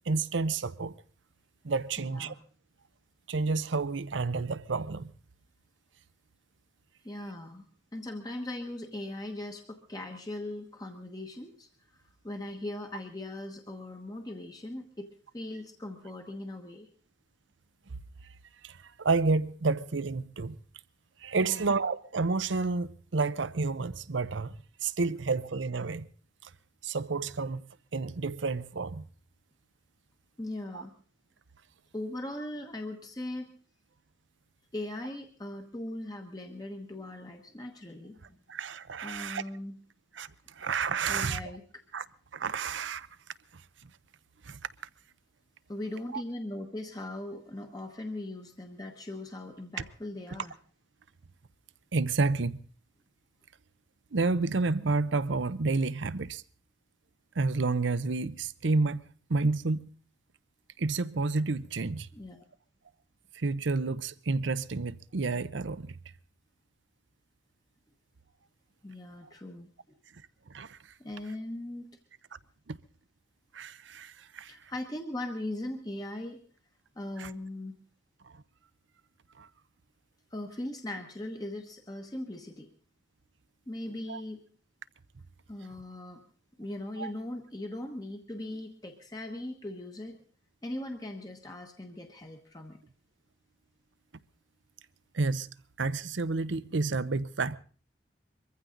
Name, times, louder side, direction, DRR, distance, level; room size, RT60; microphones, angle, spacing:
voice 1, 0.1-1.0 1.6-2.3 3.3-5.1 17.9-18.0 18.6-20.6 21.2-24.5 24.8-26.1 26.4-26.5 26.8-27.7 27.9-29.1 30.7-30.8 38.5-39.4 40.1-41.4 41.9-42.0 42.3-43.1 43.5-43.9 44.4-44.6 46.1-46.2 51.9-52.6 54.1-56.4 57.3-59.9 60.8-62.1 63.3-66.0 70.5-70.9 72.7-72.8 73.5-74.7 77.2-77.3 78.2-78.4 79.4-79.5 84.1-84.2 87.0-87.1 95.1-95.5 95.8-97.6, right 3 dB, 80° right, 0.7 m, -30 dB
voice 2, 2.0-2.4 7.0-7.6 7.9-15.1 15.3-16.9 21.4-21.7 30.4-30.9 31.9-33.5 34.7-38.2 39.0-39.7 41.1-41.6 45.7-50.5 62.1-62.4 68.8-69.7 71.0-72.0 74.5-76.4 77.0-77.7 80.3-82.7 83.7-84.4 85.5-86.2 86.6-90.2 90.6-92.8, left 1 dB, 20° left, 1.1 m, -39 dB
23.0 x 15.0 x 3.9 m
head